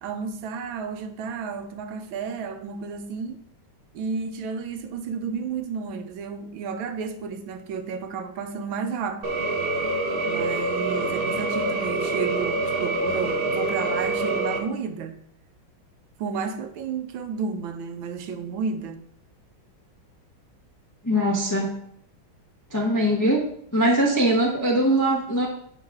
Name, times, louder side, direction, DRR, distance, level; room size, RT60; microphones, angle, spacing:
voice 1, 0.0-3.4 3.9-9.2 10.3-15.2 16.2-19.0, right 5 dB, 80° right, 1.5 m, -32 dB
sound 1, 9.2-14.6, right 2 dB, 45° right, 0.8 m, -26 dB
voice 2, 21.0-21.7 22.7-23.5 23.7-25.5, right 1 dB, 25° left, 0.4 m, -21 dB
8.5 x 3.9 x 4.7 m
omnidirectional pair, 2.2 m